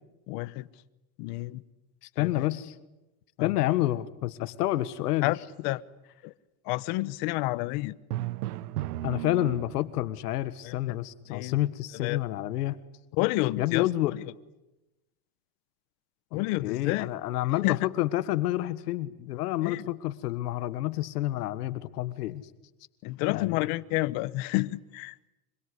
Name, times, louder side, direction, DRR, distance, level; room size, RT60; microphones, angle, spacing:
voice 1, 0.3-0.7 1.2-1.6 2.2-2.5 3.4-3.8 5.2-5.4 5.6-5.8 6.2-6.3 6.6-8.0 10.6-11.0 11.3-11.6 12.0-12.2 13.1-14.2 16.3-17.1 17.4-17.8 19.6-19.9 23.0-25.1, left 20 dB, 45° left, 1.0 m, -30 dB
voice 2, 2.0-2.7 3.4-5.3 9.0-12.8 13.6-14.2 16.3-22.5 23.3-23.7, left 15 dB, 90° left, 1.6 m, -29 dB
Drum, 8.1-10.1, right 15 dB, 80° right, 1.0 m, -34 dB
25.5 x 23.5 x 9.8 m
supercardioid pair, 160°, 46 cm